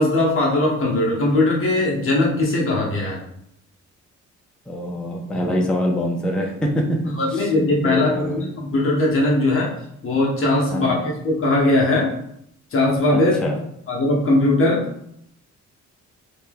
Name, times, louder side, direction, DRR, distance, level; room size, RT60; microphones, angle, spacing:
voice 1, 0.0-3.2 7.2-9.7 10.0-12.1 12.7-13.3 13.9-14.8, left 2 dB, 45° left, -3 dB, 0.7 m, -19 dB
voice 2, 4.7-8.4 10.7-11.0 13.1-13.6, equal, 5° left, 0 dB, 0.4 m, -25 dB
2.8 x 2.2 x 3.3 m, 0.75 s
cardioid pair, 120°, 30 cm